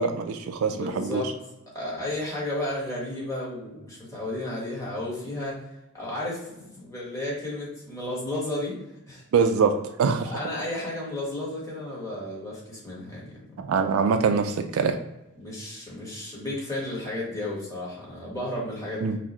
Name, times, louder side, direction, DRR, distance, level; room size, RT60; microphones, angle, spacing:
voice 1, 0.0-1.2 9.3-9.7 10.0-10.4 13.6-15.0 19.0-19.2, right 5 dB, 65° right, 7 dB, 0.3 m, -24 dB
voice 2, 0.7-1.3 1.7-5.6 5.9-8.8 9.1-9.2 10.3-13.4 15.4-19.1, left 1 dB, 15° left, -5 dB, 1.4 m, -33 dB
5.8 x 2.0 x 3.0 m, 0.93 s
head